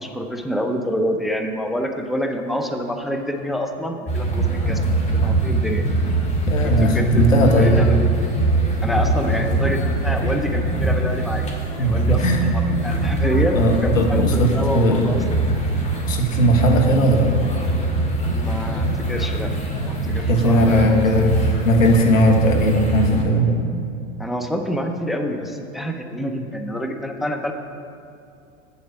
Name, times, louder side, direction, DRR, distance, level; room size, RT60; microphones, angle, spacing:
voice 1, 0.0-4.8 5.1-5.8 6.6-8.1 8.8-11.5 11.8-12.2 12.5-15.2 18.3-19.5 19.8-21.1 21.5-21.7 24.2-27.5, equal, ahead, 4 dB, 0.6 m, -27 dB
sound 1, 4.1-23.2, right 2 dB, 20° left, 1.9 m, -22 dB
voice 2, 6.5-7.7 9.4-9.5 11.8-12.4 13.5-15.1 16.1-17.3 20.3-23.5, equal, 85° left, 2 dB, 1.6 m, -18 dB
8.6 x 7.2 x 7.0 m, 2.5 s
hypercardioid pair, 100°, 38 cm